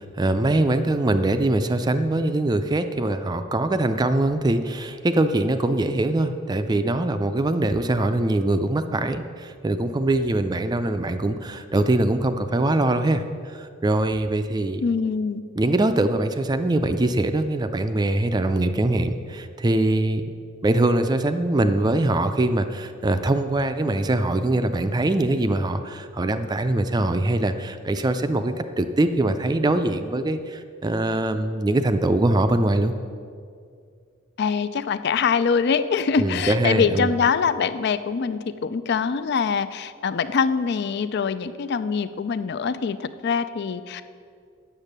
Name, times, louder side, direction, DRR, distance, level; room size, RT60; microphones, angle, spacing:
voice 1, 0.0-14.8 15.6-20.2 20.6-32.9 36.2-37.1, right 2 dB, 20° right, 9 dB, 0.4 m, -23 dB
voice 2, 14.8-15.4 34.4-44.0, left 6 dB, 55° left, 14 dB, 0.4 m, -24 dB
8.9 x 7.4 x 6.6 m, 2.3 s
head